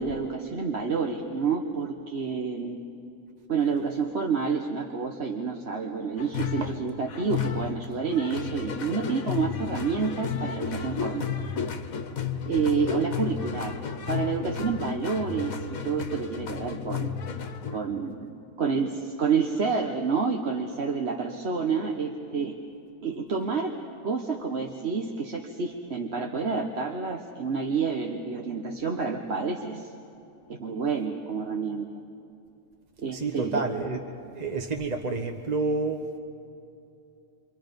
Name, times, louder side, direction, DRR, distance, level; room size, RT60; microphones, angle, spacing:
voice 1, 0.0-2.8 3.5-11.3 12.5-13.8 14.1-17.1 17.7-22.6 23.0-23.7 24.0-29.9 30.5-31.9 33.0-33.7, right 5 dB, 50° right, 1 dB, 1.5 m, -29 dB
sound 1, 6.2-17.8, left 7 dB, 85° left, 1.5 m, -33 dB
voice 2, 33.1-36.1, right 3 dB, 35° right, 3 dB, 1.2 m, -29 dB
28.0 x 25.5 x 5.3 m, 2.7 s
omnidirectional pair, 1.4 m